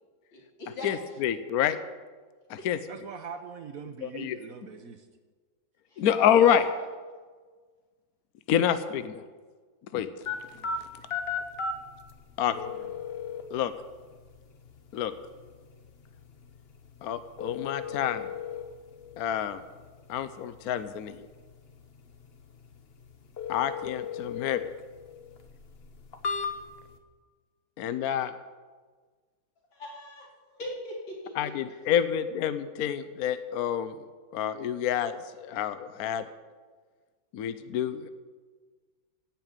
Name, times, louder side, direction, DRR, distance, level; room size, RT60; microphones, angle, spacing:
voice 1, 0.3-0.9 5.9-6.0 6.3-6.8 29.7-30.3 30.5-31.8, left 1 dB, 85° left, -3 dB, 4.0 m, -39 dB
voice 2, 0.8-1.8 2.5-2.8 4.0-4.4 6.0-6.7 8.5-9.3 9.9-10.1 12.4-12.6 13.5-13.7 14.9-15.1 17.0-18.3 19.2-19.6 20.1-21.2 23.5-24.7 27.8-28.4 31.3-34.0 34.3-36.2 37.3-38.1, left 9 dB, 65° left, 12 dB, 1.0 m, -27 dB
voice 3, 2.9-5.1 10.6-10.8 12.5-12.9, right 6 dB, 60° right, 7 dB, 1.0 m, -43 dB
sound 1, 10.2-27.0, left 5 dB, 40° left, 1.0 m, -38 dB
16.0 x 5.9 x 8.8 m, 1.4 s
omnidirectional pair, 2.1 m